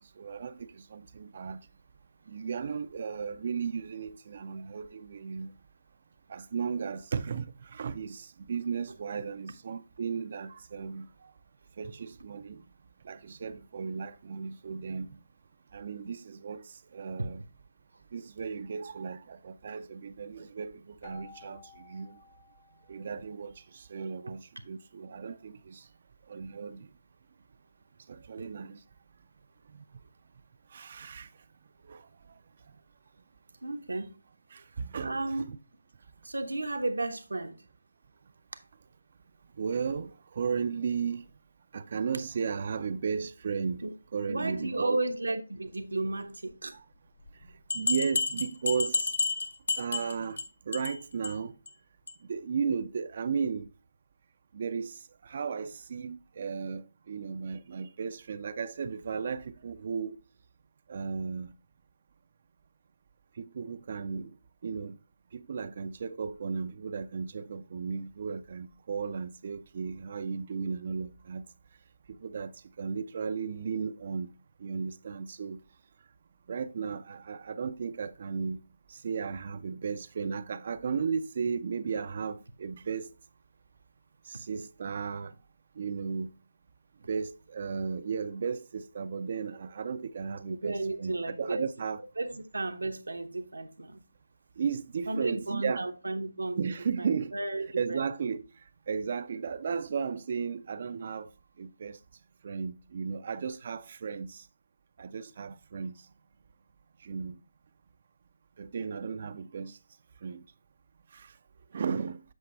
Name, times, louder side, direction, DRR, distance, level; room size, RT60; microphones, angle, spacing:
voice 1, 0.2-1.7 2.3-5.5 6.3-11.3 11.8-12.6 13.0-15.2 15.7-17.4 18.1-22.2 22.9-25.9 26.3-26.9 28.1-28.8 29.7-29.8 30.7-31.3 31.8-32.1 34.5-35.5 39.6-41.2 41.7-43.8 44.1-45.0 46.7-46.8 47.7-49.1 49.8-51.6 52.3-53.7 54.5-60.2 60.9-61.5 63.4-64.3 64.6-65.0 65.3-71.5 72.1-72.5 72.8-74.3 74.6-75.6 76.5-78.6 78.9-83.1 84.3-85.3 85.8-86.3 87.1-92.0 94.6-95.8 96.6-97.3 97.7-98.4 98.9-101.3 101.6-102.0 102.4-104.5 105.0-105.9 107.0-107.4 108.6-109.8 110.2-110.5 111.1-111.3 111.7-112.2, right 6 dB, 45° right, 0.4 m, -35 dB
Keyboard (musical), 21.0-23.6, left 4 dB, 60° left, 2.3 m, -54 dB
voice 2, 33.6-34.2 34.6-34.7 35.0-35.4 36.2-37.6 38.5-38.6 43.8-43.9 44.3-46.8 90.5-91.7 92.2-94.0 95.1-96.7 97.0-98.0, right 2 dB, 85° right, 0.9 m, -33 dB
sound 1, 47.3-47.4 47.7-50.4 50.7-51.0 51.2-51.3 51.7-51.8 52.1-52.2, left 3 dB, 75° left, 1.0 m, -30 dB
8.0 x 5.1 x 3.3 m
figure-of-eight pair, 155°, 0 cm